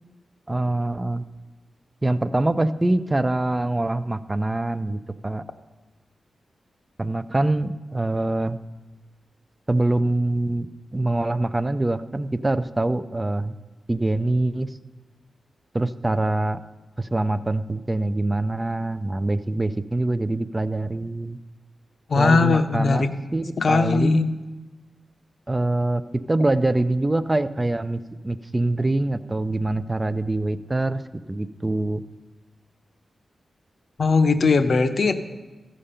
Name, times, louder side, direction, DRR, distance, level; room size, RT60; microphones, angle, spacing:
voice 1, 0.5-1.2 2.0-5.4 7.0-8.6 9.7-10.7 10.9-13.5 13.9-14.7 15.7-16.6 17.0-21.4 22.1-24.3 25.5-26.0 26.3-31.0 31.3-32.0, right 2 dB, 20° right, 12 dB, 0.4 m, -24 dB
voice 2, 22.1-23.1 23.6-24.3 34.0-35.1, left 4 dB, 60° left, 8 dB, 0.7 m, -19 dB
14.5 x 5.1 x 5.5 m, 1.2 s
cardioid pair, 75°, 0 cm